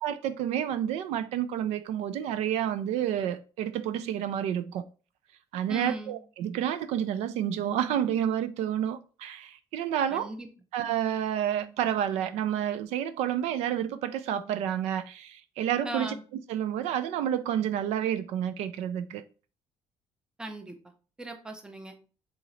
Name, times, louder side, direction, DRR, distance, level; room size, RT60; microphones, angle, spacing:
voice 1, 0.0-4.8 5.5-10.3 10.7-16.1 16.5-19.2, right 10 dB, 85° right, 0.4 m, -29 dB
voice 2, 5.7-6.2 10.1-10.5 15.8-16.2 20.4-20.7 21.2-21.9, right 2 dB, 5° right, 0.5 m, -38 dB
3.8 x 3.8 x 3.1 m
cardioid pair, 170°, 11 cm